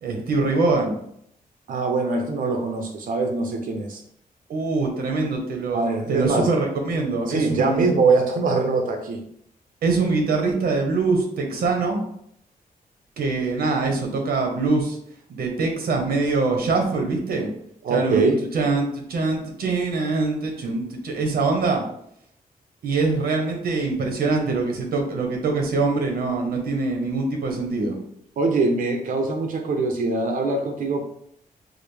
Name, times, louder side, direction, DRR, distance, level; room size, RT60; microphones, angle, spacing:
voice 1, 0.0-1.0 4.5-7.9 9.8-12.0 13.2-15.0 15.3-17.5 17.9-21.8 22.8-28.0, right 3 dB, 90° right, 2 dB, 0.9 m, -23 dB
voice 2, 1.7-4.0 5.7-6.5 7.3-9.2 17.8-18.4 28.4-31.1, right 3 dB, 65° right, 4 dB, 0.5 m, -23 dB
4.9 x 2.0 x 3.2 m, 0.71 s
wide cardioid pair, 170°, 15 cm